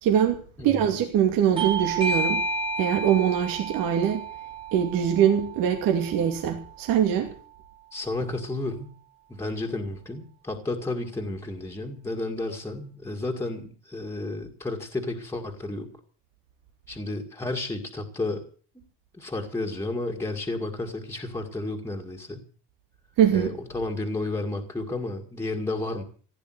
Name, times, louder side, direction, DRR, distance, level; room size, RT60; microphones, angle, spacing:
voice 1, 0.0-2.4 2.8-4.3 4.7-7.3 23.2-23.5, right 9 dB, 75° right, 4 dB, 2.6 m, -23 dB
Bell / Doorbell, 1.6-6.7, right 2 dB, 15° right, 2.5 m, -31 dB
voice 2, 7.9-8.9 9.4-15.9 16.9-18.5 19.1-22.4 23.3-26.0, left 2 dB, 5° left, 3 dB, 2.1 m, -32 dB
16.0 x 10.0 x 7.9 m, 0.42 s
cardioid pair, 175°, 34 cm